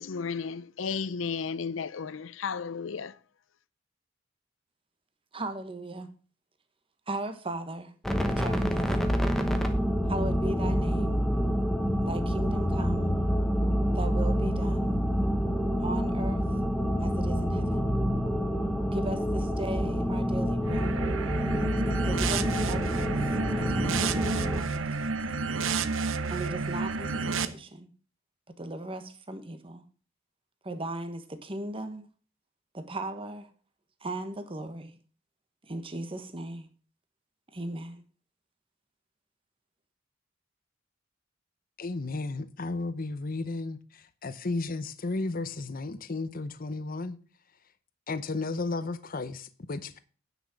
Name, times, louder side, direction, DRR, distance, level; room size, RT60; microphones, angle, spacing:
voice 1, 0.0-3.1, left 5 dB, 80° left, 0.6 m, -33 dB
voice 2, 5.3-6.1 7.1-7.9 8.2-9.1 10.1-11.2 12.0-13.1 13.9-15.0 15.8-16.5 17.0-17.9 18.9-21.0 22.0-23.1 23.6-25.2 26.3-27.9 28.6-29.8 30.6-32.1 32.7-33.5 34.0-35.0 35.6-36.7 37.5-38.0, right 2 dB, 30° right, 1.2 m, -37 dB
sound 1, 8.0-24.6, equal, ahead, 1.1 m, -27 dB
sound 2, 20.6-27.5, right 4 dB, 85° right, 0.8 m, -31 dB
voice 3, 41.8-47.2 48.1-50.0, left 3 dB, 45° left, 0.7 m, -33 dB
9.6 x 6.0 x 7.0 m
head